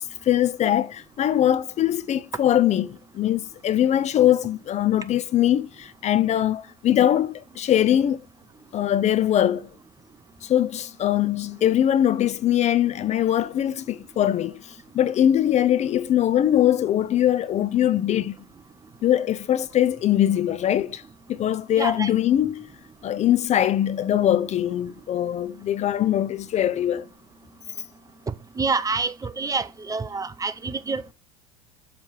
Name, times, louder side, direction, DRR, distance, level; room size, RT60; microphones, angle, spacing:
voice 1, 0.2-8.2 8.7-9.7 10.4-18.3 19.0-21.0 21.3-22.7 23.0-27.1, left 11 dB, 35° left, 0.5 m, -22 dB
voice 2, 21.8-22.1 28.6-31.1, right 4 dB, 15° right, 0.6 m, -27 dB
7.2 x 3.2 x 5.7 m
hypercardioid pair, 90°, 20 cm